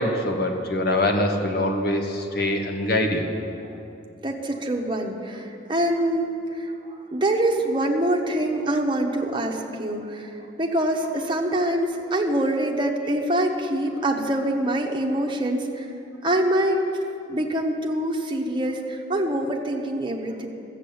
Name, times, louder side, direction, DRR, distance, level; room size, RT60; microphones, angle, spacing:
voice 1, 0.0-3.3, left 1 dB, 55° left, 3 dB, 1.4 m, -24 dB
voice 2, 4.2-15.9 16.2-16.8 17.3-20.5, right 1 dB, 25° right, 0 dB, 1.2 m, -25 dB
14.0 x 7.4 x 8.6 m, 2.7 s
head